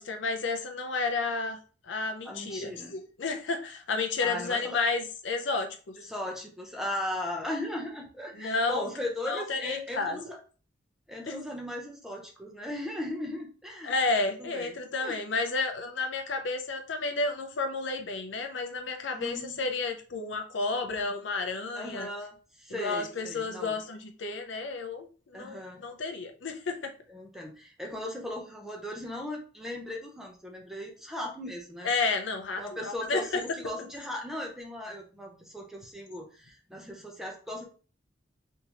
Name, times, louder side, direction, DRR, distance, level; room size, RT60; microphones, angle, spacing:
voice 1, 0.0-1.6 1.9-5.8 8.4-8.9 9.3-10.2 11.3-11.4 13.8-22.1 22.8-25.1 25.3-26.9 31.8-33.4, left 3 dB, 80° left, 5 dB, 0.6 m, -31 dB
voice 2, 2.2-2.9 4.2-4.8 6.0-10.4 11.1-14.7 15.0-15.2 19.1-19.6 21.7-23.7 25.3-25.8 27.1-31.9 32.6-37.6, left 1 dB, ahead, 0 dB, 0.7 m, -37 dB
3.5 x 2.8 x 2.9 m, 0.37 s
head